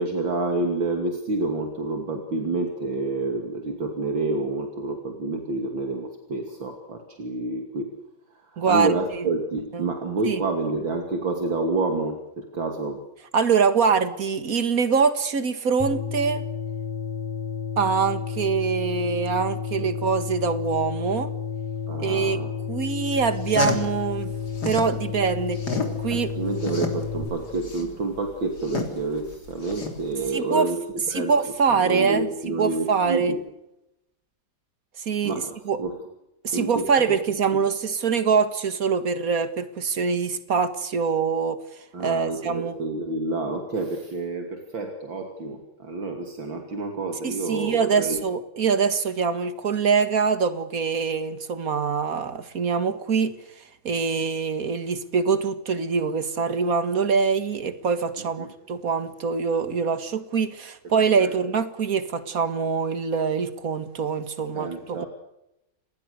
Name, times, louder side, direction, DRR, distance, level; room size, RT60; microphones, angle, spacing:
voice 1, 0.0-7.9 8.3-13.0 19.8-19.9 21.9-22.5 26.1-31.3 31.7-33.4 35.2-36.0 36.5-37.1 41.9-48.2 58.4-58.5 61.2-61.3 64.5-65.1, right 3 dB, 70° right, 3.4 m, -28 dB
voice 2, 8.6-8.9 9.7-9.9 10.2-10.4 13.3-16.4 17.8-21.3 22.0-22.4 22.7-24.3 24.6-26.3 30.3-30.7 31.1-32.3 32.6-33.3 35.0-35.8 36.4-41.6 42.0-42.8 47.2-53.3 53.8-65.0, right 5 dB, 45° right, 2.0 m, -24 dB
sound 1, 15.8-27.2, left 6 dB, 15° right, 8.1 m, -31 dB
sound 2, 23.2-25.0 25.3-30.3, left 3 dB, 50° left, 4.1 m, -30 dB
28.0 x 20.0 x 6.7 m
omnidirectional pair, 2.2 m